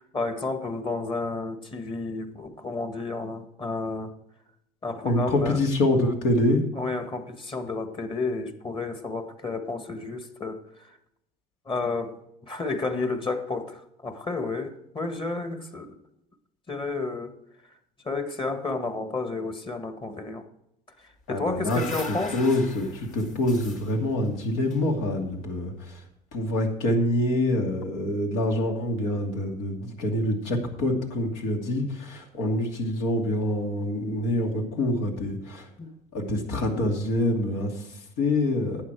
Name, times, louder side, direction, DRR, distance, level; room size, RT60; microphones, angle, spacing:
voice 1, 0.0-4.1 4.8-5.6 6.8-10.6 11.7-12.2 12.5-16.0 16.7-17.3 18.0-20.4 21.3-22.4 35.8-35.9, left 3 dB, 30° left, 1.7 m, -31 dB
voice 2, 5.0-6.6 21.3-21.8 22.1-26.0 26.3-35.7 36.1-38.8, left 1 dB, 75° left, 2.5 m, -26 dB
sound 1, 21.2-25.5, left 4 dB, 45° left, 2.2 m, -41 dB
11.5 x 8.6 x 4.7 m
supercardioid pair, 85°, 18 cm